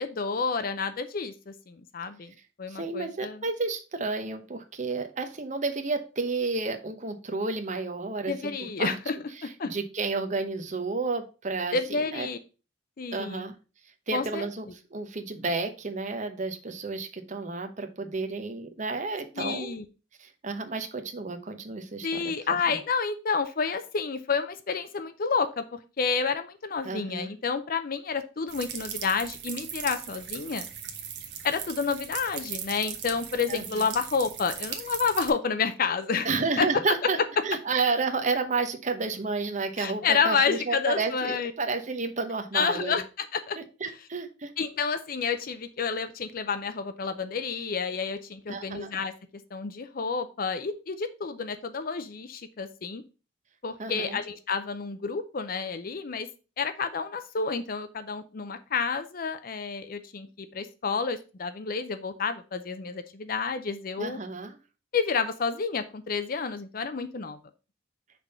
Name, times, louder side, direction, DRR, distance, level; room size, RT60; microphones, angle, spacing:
voice 1, 0.0-2.3 2.6-3.4 8.3-9.2 9.4-9.7 11.7-12.4 13.0-13.5 14.1-14.5 19.4-19.8 22.0-30.7 31.4-36.3 36.6-36.8 39.8-41.5 42.5-43.6 44.6-49.1 49.5-53.0 53.6-56.3 56.6-64.2 64.9-67.4, left 5 dB, 50° left, 10 dB, 0.5 m, -30 dB
voice 2, 2.7-8.5 8.8-9.0 9.4-12.3 13.1-13.5 14.1-19.7 20.2-22.2 22.5-22.8 26.8-27.3 33.5-33.8 36.2-37.2 37.4-43.0 43.6-44.5 48.5-48.9 53.8-54.2 64.0-64.6, right 3 dB, 40° right, 6 dB, 0.9 m, -31 dB
sound 1, 28.5-35.3, right 8 dB, 65° right, 1.1 m, -38 dB
6.0 x 3.5 x 5.4 m, 0.33 s
head